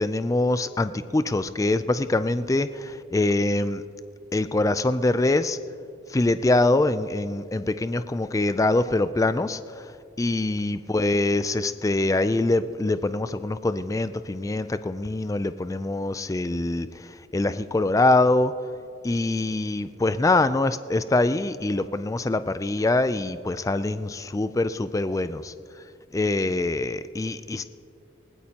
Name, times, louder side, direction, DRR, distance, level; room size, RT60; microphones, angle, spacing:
voice 1, 0.0-3.8 4.3-5.6 6.1-9.9 10.2-18.5 19.0-25.5 26.1-27.6, left 2 dB, 15° left, 12 dB, 0.3 m, -24 dB
20.0 x 18.0 x 2.9 m, 2.5 s
head